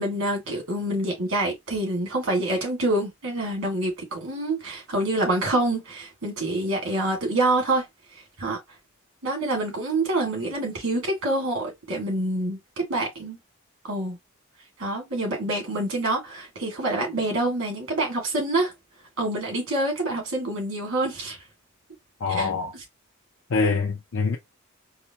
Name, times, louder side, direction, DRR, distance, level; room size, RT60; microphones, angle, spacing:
voice 1, 0.0-7.9 8.4-8.6 9.2-13.4 13.8-14.2 14.8-18.7 19.2-21.4 22.3-22.5, right 2 dB, 80° right, 2.0 m, -26 dB
voice 2, 22.2-22.7 23.5-24.4, left 4 dB, 65° left, 0.6 m, -24 dB
4.8 x 2.1 x 2.8 m
head